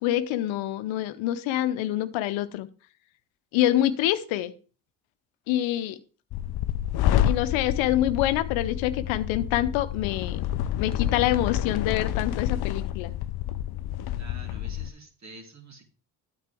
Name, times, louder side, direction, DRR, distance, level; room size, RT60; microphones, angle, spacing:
voice 1, 0.0-2.7 3.5-4.5 5.5-6.0 7.3-10.4 10.8-13.1, left 13 dB, 80° left, 11 dB, 0.9 m, -26 dB
sound 1, 6.3-14.9, left 12 dB, 55° left, 0.6 m, -28 dB
voice 2, 14.2-15.8, right 2 dB, 35° right, 3 dB, 3.1 m, -47 dB
9.4 x 8.7 x 3.5 m, 0.36 s
hypercardioid pair, 55°, 46 cm